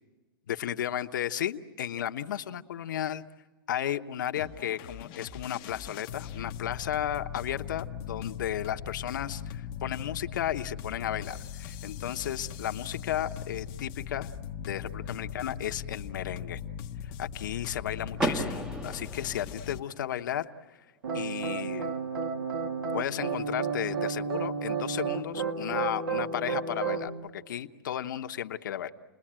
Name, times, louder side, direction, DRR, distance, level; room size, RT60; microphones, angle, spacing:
voice 1, 0.5-3.2 3.7-14.3 14.6-16.6 17.0-20.5 21.1-22.0 22.9-28.9, left 10 dB, 60° left, 8 dB, 1.1 m, -34 dB
sound 1, 4.4-19.8, left 8 dB, 30° left, 0.8 m, -40 dB
Car / Door, 18.2-20.1, right 1 dB, 5° right, 0.9 m, -33 dB
sound 2, 21.0-27.1, right 5 dB, 80° right, 2.5 m, -32 dB
29.5 x 21.0 x 8.9 m, 1.3 s
hypercardioid pair, 160°, 12 cm